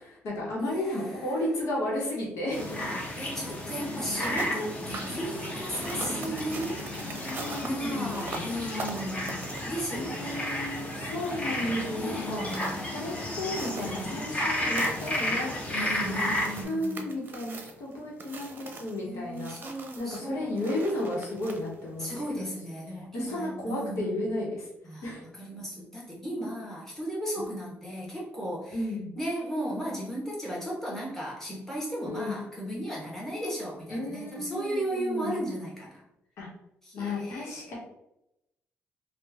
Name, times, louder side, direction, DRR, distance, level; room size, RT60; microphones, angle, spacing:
voice 1, 0.0-2.8 7.2-8.5 9.9-12.4 12.9-15.5 15.8-16.3 16.6-19.5 20.0-22.4 23.1-24.7 25.0-25.2 28.7-29.1 32.1-32.4 33.9-35.3 36.4-36.5 36.9-37.8, left 1 dB, 80° left, -3 dB, 1.2 m, -33 dB
voice 2, 0.6-1.5 3.2-6.8 7.2-10.4 12.0-12.8 13.8-14.1 15.7-17.1 19.0-20.7 22.0-24.1 24.8-25.0 25.4-28.8 29.2-36.0 36.8-37.8, equal, 10° left, -5 dB, 1.3 m, -35 dB
sound 1, 2.5-16.6, left 1 dB, 25° left, 0.9 m, -33 dB
sound 2, 4.2-22.3, right 3 dB, 40° right, 0.6 m, -44 dB
3.2 x 2.4 x 3.5 m, 0.84 s
cardioid pair, 90°, 5 cm